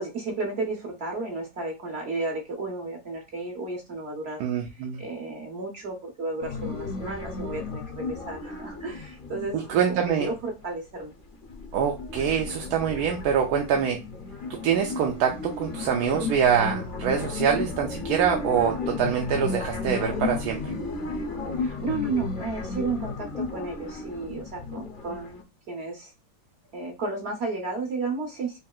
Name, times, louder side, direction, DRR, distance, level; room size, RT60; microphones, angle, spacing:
voice 1, 0.0-4.4 4.8-9.6 9.9-11.1 21.6-26.1 26.7-28.6, right 3 dB, 45° right, 2 dB, 1.0 m, -33 dB
voice 2, 4.4-5.0 9.5-10.3 11.7-14.0 14.5-20.7, right 8 dB, 70° right, 2 dB, 1.1 m, -25 dB
sound 1, 6.4-10.6 11.0-25.4, left 3 dB, 45° left, 0.7 m, -34 dB
5.3 x 2.7 x 2.3 m, 0.26 s
omnidirectional pair, 1.8 m